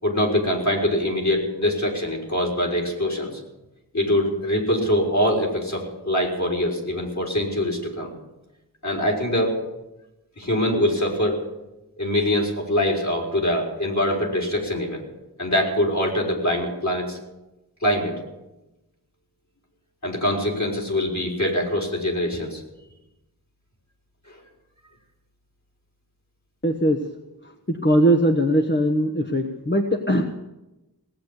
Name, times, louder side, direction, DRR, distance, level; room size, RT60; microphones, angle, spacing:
voice 1, 0.0-3.4 3.9-8.1 8.8-9.6 10.4-11.4 12.0-15.0 15.4-17.2 17.8-18.2 20.0-22.6 24.3-24.4, left 1 dB, 45° left, -1 dB, 4.2 m, -23 dB
voice 2, 26.6-27.0 27.4-30.2, right 1 dB, 30° left, 3 dB, 1.2 m, -20 dB
18.0 x 8.6 x 8.2 m, 0.98 s
wide cardioid pair, 45°, 39 cm